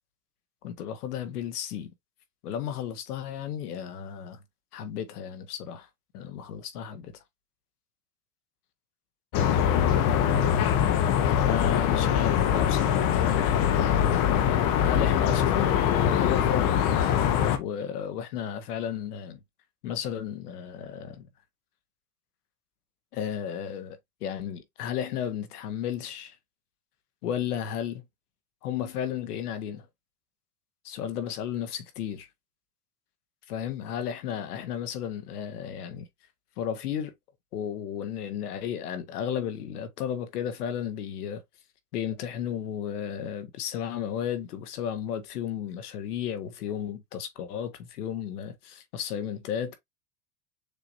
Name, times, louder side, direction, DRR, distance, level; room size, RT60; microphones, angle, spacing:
voice 1, 0.6-1.9 2.4-4.4 4.7-5.9 6.1-7.1 11.2-14.3 14.8-16.7 17.6-19.4 19.8-21.3 23.1-26.3 27.2-28.0 28.6-29.9 30.8-32.3 33.5-36.1 36.6-37.1 37.5-41.4 41.9-49.8, left 9 dB, 90° left, 1.3 m, -33 dB
sound 1, 9.3-17.6, left 9 dB, 45° left, 0.9 m, -23 dB
6.8 x 2.9 x 2.6 m
supercardioid pair, 120°, 44 cm